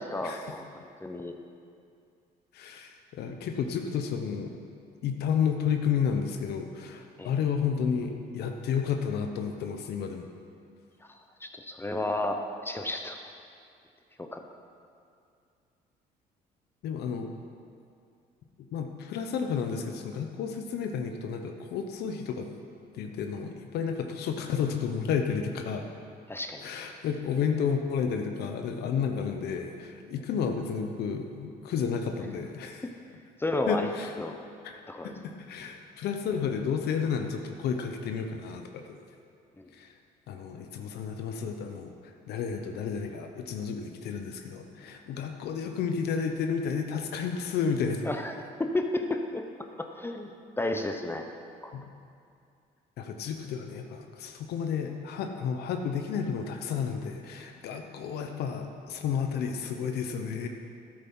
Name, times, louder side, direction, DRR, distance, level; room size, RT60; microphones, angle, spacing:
voice 1, 0.0-1.3 7.2-7.3 11.1-13.3 14.2-14.4 26.3-26.6 33.4-33.9 34.2-34.4 34.9-35.1 39.6-39.7 48.0-48.3 48.6-49.4 49.8-51.3 51.6-51.7, left 2 dB, 15° left, 4 dB, 0.7 m, -32 dB
voice 2, 2.5-4.5 5.0-10.3 16.8-17.3 18.7-22.5 22.9-25.9 26.6-32.9 33.7-34.2 34.6-39.0 39.7-39.9 40.3-41.9 42.3-48.0 51.7-51.9 53.0-60.5, left 6 dB, 75° left, 5 dB, 0.9 m, -31 dB
12.5 x 8.9 x 5.6 m, 2.4 s
cardioid pair, 110°, 17 cm